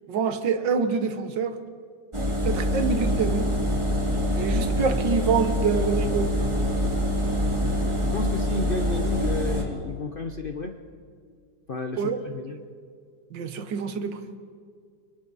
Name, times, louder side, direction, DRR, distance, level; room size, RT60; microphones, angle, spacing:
voice 1, 0.1-1.6 2.4-3.5 4.4-6.3 12.0-12.2 13.3-14.2, right 5 dB, 80° right, 9 dB, 1.8 m, -26 dB
Engine, 2.1-9.6, equal, 15° right, 2.2 m, -25 dB
voice 2, 8.1-10.8 11.7-12.6, left 3 dB, 45° left, 5 dB, 0.7 m, -32 dB
29.0 x 24.0 x 4.1 m, 2.1 s
omnidirectional pair, 2.0 m